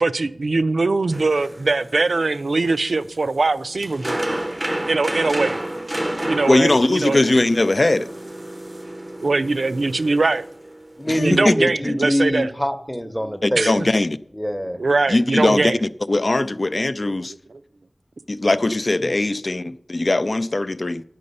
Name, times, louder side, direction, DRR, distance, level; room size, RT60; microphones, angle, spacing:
voice 1, 0.0-4.2 4.8-5.6 6.2-7.3 9.2-10.4 11.2-12.5 13.5-13.9 14.8-15.8 17.0-17.1 17.5-17.6, right 3 dB, 85° right, 0.4 m, -21 dB
sound 1, 1.1-11.3, right 1 dB, 20° right, 0.5 m, -31 dB
voice 2, 6.5-8.1 11.1-11.5 11.8-11.9 13.4-14.2 15.1-17.3 18.3-21.0, left 2 dB, 55° left, 0.4 m, -20 dB
voice 3, 11.0-13.7 14.3-14.8, equal, 10° left, 0.8 m, -24 dB
9.8 x 7.6 x 5.4 m
wide cardioid pair, 45°, 0 cm